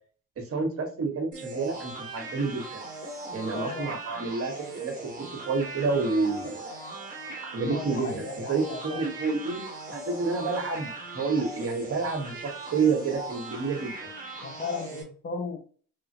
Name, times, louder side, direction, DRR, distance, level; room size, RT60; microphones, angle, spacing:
voice 1, 0.4-2.8 3.3-6.6 7.4-9.6 9.9-14.1, right 4 dB, 50° right, 3 dB, 1.2 m, -29 dB
sound 1, 1.3-15.0, right 3 dB, 25° right, 1.3 m, -39 dB
voice 2, 3.5-4.0 7.7-9.1 14.4-15.6, left 4 dB, 35° left, 2 dB, 0.5 m, -36 dB
3.2 x 2.4 x 2.7 m, 0.43 s
cardioid pair, 90°, 30 cm